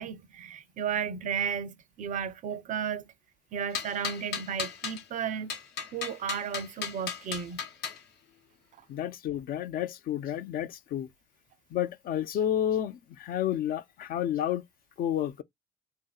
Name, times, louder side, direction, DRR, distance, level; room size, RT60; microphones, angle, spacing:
voice 1, 0.0-3.1 3.5-5.6 5.9-7.6, right 7 dB, 50° right, 0.5 m, -34 dB
sound 1, 3.7-5.0 5.5-8.0, left 7 dB, 75° left, 1.0 m, -35 dB
voice 2, 8.9-11.1 11.7-14.6 15.0-15.4, left 10 dB, 60° left, 0.4 m, -30 dB
2.8 x 2.6 x 2.3 m
cardioid pair, 110°, 17 cm